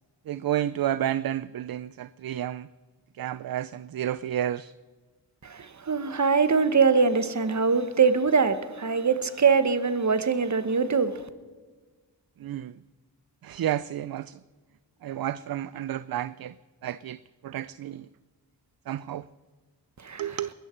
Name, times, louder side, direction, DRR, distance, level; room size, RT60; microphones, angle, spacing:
voice 1, 0.3-2.7 3.2-4.7 12.4-12.7 13.4-14.4 15.0-16.5 16.8-18.1 18.9-19.3 20.2-20.5, right 11 dB, 60° right, 0.5 m, -31 dB
voice 2, 5.4-11.2 20.0-20.4, right 5 dB, 40° right, 1.2 m, -23 dB
21.0 x 13.0 x 4.4 m
cardioid pair, 65°, 42 cm